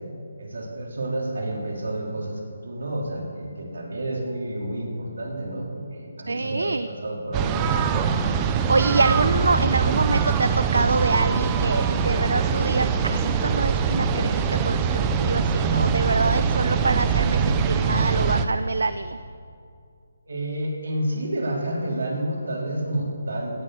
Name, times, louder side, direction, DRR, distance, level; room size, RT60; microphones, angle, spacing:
voice 1, 0.4-7.9 20.3-23.6, right 1 dB, 70° right, -1 dB, 3.5 m, -30 dB
voice 2, 6.3-6.9 8.5-19.2, right 3 dB, 90° right, 12 dB, 0.5 m, -25 dB
sound 1, 7.3-18.4, right 6 dB, 10° right, 0.4 m, -23 dB
17.0 x 7.6 x 6.4 m, 2.4 s
hypercardioid pair, 180°, 0 cm